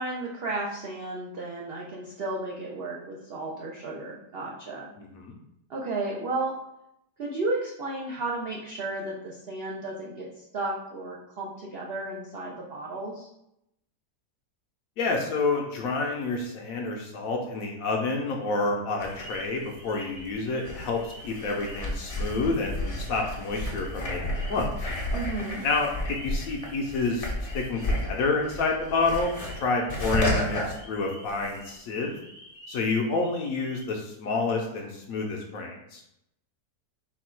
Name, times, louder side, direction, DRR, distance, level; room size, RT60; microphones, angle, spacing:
voice 1, 0.0-4.9 5.7-6.6 7.2-10.3 10.5-13.3 25.1-25.6, right 2 dB, 70° right, -3 dB, 0.5 m, -33 dB
voice 2, 5.0-5.4 15.0-24.9 25.6-27.3 27.5-32.2 32.7-36.0, left 3 dB, 70° left, 1 dB, 0.9 m, -29 dB
sound 1, 19.0-31.7 32.0-33.8, left 1 dB, 45° left, 0.4 m, -33 dB
4.3 x 2.3 x 4.3 m, 0.82 s
omnidirectional pair, 1.8 m